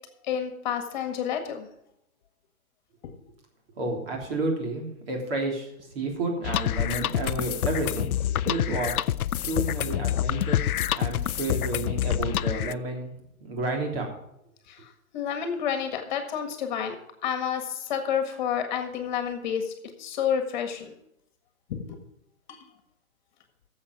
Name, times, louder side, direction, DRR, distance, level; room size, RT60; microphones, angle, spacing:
voice 1, 0.3-1.7 14.7-14.8 15.1-17.0 17.2-19.7 20.0-20.9 21.7-22.0 22.5-22.6, left 8 dB, 35° left, 6 dB, 1.8 m, -29 dB
voice 2, 3.8-8.1 8.4-9.0 9.4-10.6 10.9-13.1 13.4-14.1, right 2 dB, 40° right, 1 dB, 3.3 m, -31 dB
sound 1, 6.4-12.7, left 11 dB, 90° left, 0.6 m, -27 dB
11.0 x 7.6 x 7.4 m, 0.80 s
hypercardioid pair, 165°, 43 cm